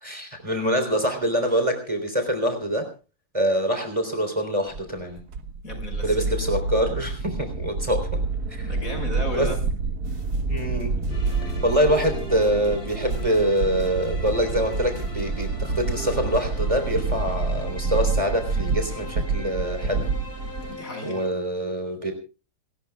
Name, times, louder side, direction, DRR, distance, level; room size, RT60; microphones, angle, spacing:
voice 1, 0.0-2.9 3.3-5.2 6.0-8.2 8.5-8.8 9.4-9.5 10.5-11.0 11.4-20.1 21.0-22.1, equal, 20° right, 6 dB, 3.7 m, -25 dB
sound 1, 4.7-20.7, right 3 dB, 75° right, 1.8 m, -28 dB
voice 2, 5.6-6.3 8.6-9.6 20.7-21.3, left 2 dB, 60° left, 5 dB, 6.4 m, -34 dB
sound 2, 10.0-16.4, right 2 dB, 55° right, 5.0 m, -39 dB
sound 3, 11.1-21.3, left 1 dB, 35° left, 4.0 m, -42 dB
29.5 x 14.0 x 2.3 m, 0.33 s
omnidirectional pair, 1.6 m